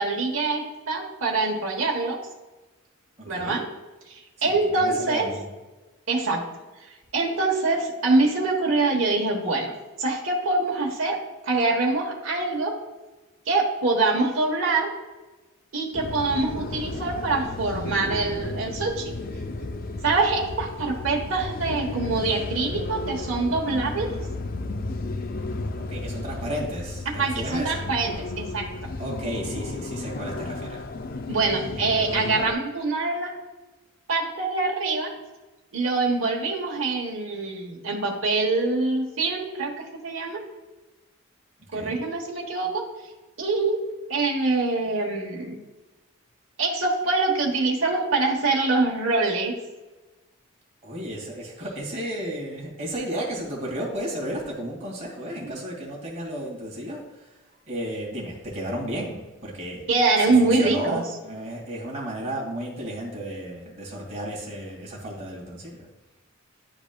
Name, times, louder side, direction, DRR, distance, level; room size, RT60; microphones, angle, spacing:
voice 1, 0.0-2.2 3.2-3.6 4.4-5.3 6.1-6.4 7.1-9.7 10.0-11.2 11.5-12.8 13.5-14.9 15.7-19.1 20.0-24.1 27.2-28.6 31.3-33.4 34.1-35.1 35.7-40.4 41.7-42.8 43.4-43.8 44.1-45.6 46.6-49.6 59.9-61.0, right 3 dB, 75° right, 0 dB, 1.1 m, -24 dB
voice 2, 3.2-3.6 4.4-5.5 25.9-27.8 29.0-30.9 41.7-42.0 50.8-57.4 57.7-59.9 60.2-65.9, right 1 dB, 35° right, -3 dB, 2.1 m, -33 dB
sound 1, 15.9-32.5, left 2 dB, 45° left, 0.4 m, -33 dB
10.5 x 4.9 x 2.2 m, 1.2 s
head